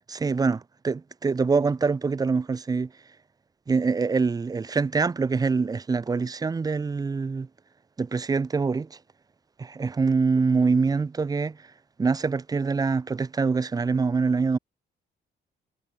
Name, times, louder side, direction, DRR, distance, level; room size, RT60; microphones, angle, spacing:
voice 1, 0.1-2.9 3.7-7.5 8.0-9.0 9.6-11.6 12.0-14.6, right 4 dB, 20° right, 0.5 m, -24 dB
cardioid pair, 90°, 20 cm